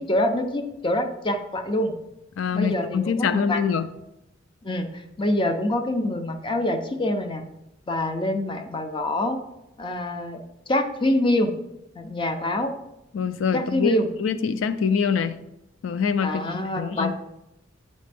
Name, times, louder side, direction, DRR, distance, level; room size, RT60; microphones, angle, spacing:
voice 1, 0.0-1.9 2.5-3.6 4.6-7.4 7.9-9.4 9.8-10.4 10.7-11.5 12.0-12.7 13.5-14.1 16.2-17.1, left 1 dB, 25° left, 6 dB, 0.6 m, -25 dB
voice 2, 2.4-3.9 13.1-13.9 14.2-15.4 15.8-16.5 16.8-17.1, left 6 dB, 85° left, 12 dB, 0.4 m, -24 dB
8.3 x 4.2 x 3.4 m, 0.89 s
head